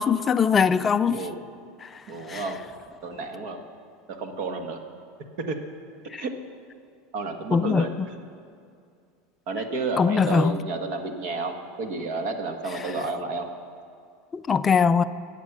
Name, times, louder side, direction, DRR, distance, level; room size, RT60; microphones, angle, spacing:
voice 1, 0.0-1.2 1.8-1.9 2.3-2.4 6.1-6.2 7.5-8.1 10.0-10.5 12.7-12.9 14.3-15.0, left 6 dB, 15° left, 10 dB, 0.3 m, -22 dB
voice 2, 2.1-2.6 3.0-3.6 4.2-4.8 5.5-5.6 6.2-6.3 7.1-7.9 9.5-13.5, right 3 dB, 45° right, 5 dB, 1.5 m, -31 dB
22.5 x 8.2 x 6.1 m, 2.4 s
supercardioid pair, 170°, 0 cm